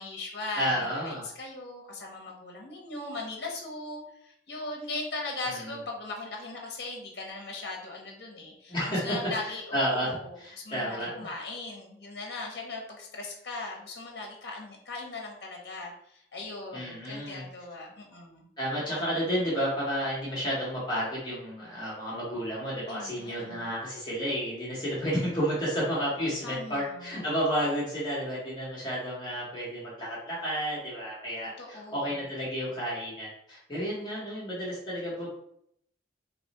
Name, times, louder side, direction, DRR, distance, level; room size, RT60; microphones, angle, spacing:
voice 1, 0.0-18.5 22.9-23.7 26.4-27.2 31.6-32.2, left 2 dB, 65° left, -1 dB, 0.9 m, -39 dB
voice 2, 0.5-1.3 5.4-5.7 8.7-9.1 9.4-11.1 16.7-17.4 18.6-35.3, equal, 25° left, -7 dB, 1.0 m, -31 dB
2.9 x 2.4 x 4.0 m, 0.71 s
head